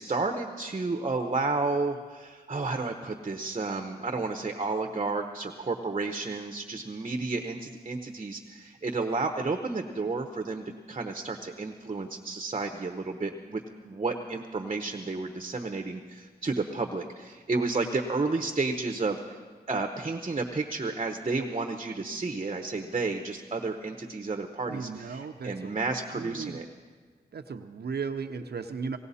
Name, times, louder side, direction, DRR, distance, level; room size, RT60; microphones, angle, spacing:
voice 1, 0.0-13.6 13.9-19.4 19.7-26.6, right 3 dB, 35° right, 5 dB, 0.9 m, -31 dB
voice 2, 24.7-25.8 26.1-26.6 27.3-29.0, right 5 dB, 70° right, 6 dB, 0.7 m, -36 dB
18.0 x 18.0 x 4.2 m, 1.5 s
wide cardioid pair, 80°, 17 cm